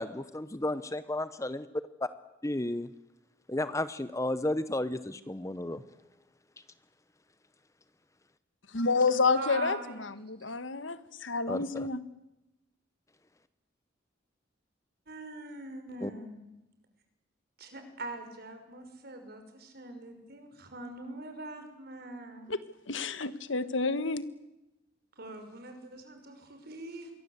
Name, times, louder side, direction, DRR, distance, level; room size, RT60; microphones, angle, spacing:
voice 1, 0.0-1.7 2.4-2.9 3.5-5.8 11.5-11.9 16.0-16.1, left 1 dB, 15° left, 14 dB, 0.9 m, -33 dB
voice 2, 8.7-12.0 22.5-22.6 22.9-24.3, left 4 dB, 80° left, 14 dB, 1.6 m, -29 dB
voice 3, 9.3-10.0 15.1-16.5 17.6-22.5 25.2-27.1, right 2 dB, 55° right, 6 dB, 5.9 m, -42 dB
27.0 x 23.0 x 8.2 m, 0.94 s
head